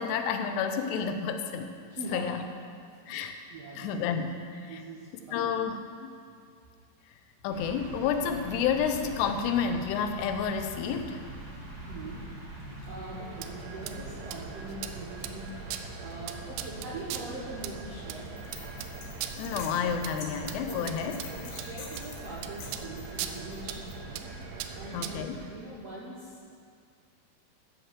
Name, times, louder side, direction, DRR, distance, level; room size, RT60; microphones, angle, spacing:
voice 1, 0.0-1.7 2.1-2.5 3.1-3.4 3.8-4.8 5.3-6.1 7.4-11.2 19.4-21.2 24.9-25.4, left 7 dB, 90° left, 7 dB, 2.9 m, -30 dB
voice 2, 1.9-2.2 3.0-3.2 3.5-3.9 4.6-5.5 11.9-12.2 12.8-15.5 15.9-18.3 20.7-20.9 21.3-24.3 24.7-26.5, right 2 dB, 65° right, -6 dB, 1.7 m, -42 dB
sound 1, 7.5-25.5, right 1 dB, 35° right, 1.1 m, -43 dB
sound 2, 13.4-25.3, right 9 dB, 85° right, 2.7 m, -41 dB
sound 3, 18.4-23.9, left 4 dB, 60° left, 2.7 m, -47 dB
13.5 x 4.9 x 7.4 m, 2.3 s
omnidirectional pair, 4.7 m